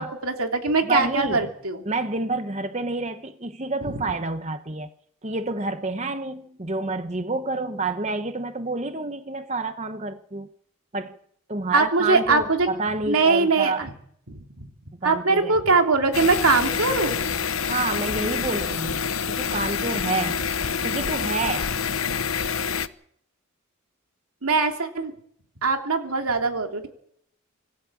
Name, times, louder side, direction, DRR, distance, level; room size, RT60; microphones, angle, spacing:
voice 1, 0.0-1.8 3.8-4.0 11.7-12.7 13.1-13.9 14.3-14.7 15.0-17.2 24.4-25.1 25.6-26.9, right 3 dB, 90° right, 3.1 m, -22 dB
voice 2, 0.8-1.5 1.9-4.9 5.2-10.5 10.9-11.2 11.5-13.8 15.0-15.5 17.6-20.4 20.8-21.7, right 3 dB, 30° right, 1.1 m, -29 dB
sound 1, 16.1-22.9, left 6 dB, 80° left, 1.0 m, -27 dB
26.0 x 14.0 x 7.4 m
head